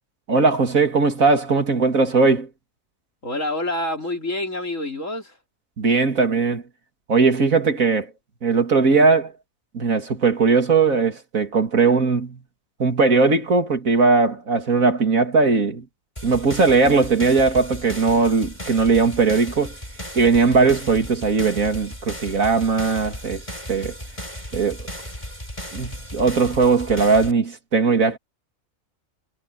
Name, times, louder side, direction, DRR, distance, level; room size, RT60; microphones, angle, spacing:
voice 1, 0.3-2.5 5.8-6.6 7.1-8.1 8.4-9.3 9.7-12.4 12.8-15.8 16.2-19.7 20.2-23.4 23.7-23.9 24.5-24.9 25.7-28.2, right 4 dB, 75° right, 2.8 m, -19 dB
voice 2, 3.2-5.4, left 1 dB, 65° left, 5.2 m, -27 dB
sound 1, 16.2-27.3, equal, 20° left, 8.2 m, -36 dB
omnidirectional pair, 1.4 m